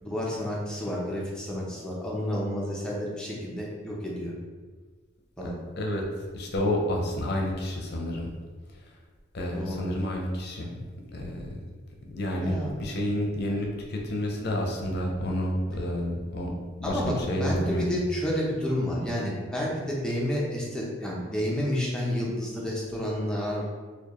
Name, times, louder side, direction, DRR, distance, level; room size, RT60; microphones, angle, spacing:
voice 1, 0.0-4.3 5.4-5.5 9.5-9.9 10.7-10.8 12.4-12.7 13.5-13.6 16.8-23.7, equal, 5° left, -5 dB, 0.6 m, -30 dB
voice 2, 6.3-8.3 9.3-10.7 11.1-11.5 12.0-16.5 16.8-17.9, left 1 dB, 55° left, 0 dB, 0.6 m, -29 dB
4.4 x 2.3 x 3.0 m, 1.4 s
head